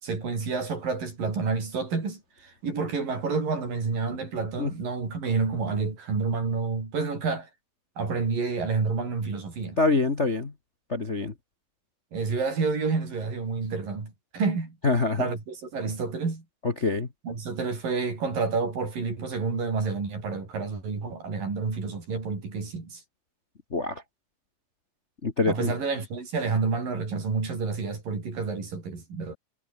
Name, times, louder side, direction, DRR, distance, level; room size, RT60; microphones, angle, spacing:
voice 1, 0.0-7.5 8.0-9.8 12.1-14.8 15.2-16.4 17.2-23.0 25.5-29.3, right 4 dB, 65° right, 8.0 m, -29 dB
voice 2, 9.8-10.5 10.9-11.3 14.8-15.2 16.8-17.1 23.7-24.0 25.2-25.7, left 3 dB, 30° left, 1.3 m, -25 dB
omnidirectional pair, 4.2 m